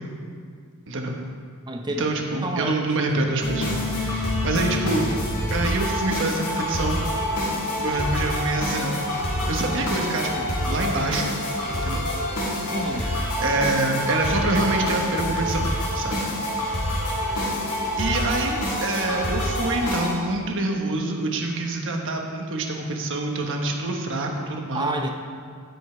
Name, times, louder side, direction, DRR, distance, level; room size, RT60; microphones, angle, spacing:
voice 1, 0.9-1.2 2.0-5.0 5.5-7.1 7.8-9.0 9.5-11.4 11.7-12.1 13.4-16.2 17.1-17.5 18.0-24.9, right 2 dB, 60° right, 2 dB, 1.2 m, -26 dB
voice 2, 1.7-2.8 3.1-3.4 12.7-13.2 24.7-25.1, right 1 dB, 20° right, 2 dB, 0.6 m, -30 dB
sound 1, 3.4-20.1, left 1 dB, 75° left, 2.6 m, -26 dB
15.5 x 5.6 x 4.5 m, 2.1 s
head